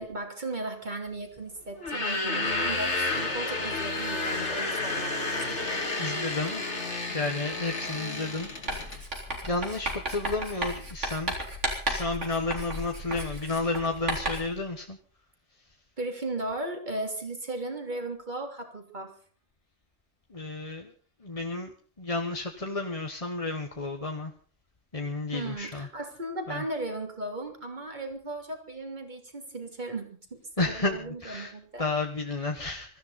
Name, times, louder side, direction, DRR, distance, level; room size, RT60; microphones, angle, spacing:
voice 1, 0.0-5.6 16.0-19.1 25.3-31.9, right 2 dB, 35° right, 3 dB, 3.3 m, -36 dB
sound 1, 1.8-9.0, left 2 dB, 60° left, 2.8 m, -31 dB
voice 2, 6.0-6.6 7.1-8.5 9.4-11.3 11.9-15.0 20.3-20.9 21.2-21.7 22.0-24.3 24.9-25.9 26.5-26.6 30.6-31.5 31.8-33.0, left 3 dB, 30° left, 3 dB, 1.3 m, -31 dB
Writing, 8.7-14.6, right 1 dB, 65° right, 4.2 m, -34 dB
24.5 x 14.0 x 4.2 m, 0.41 s
omnidirectional pair, 1.3 m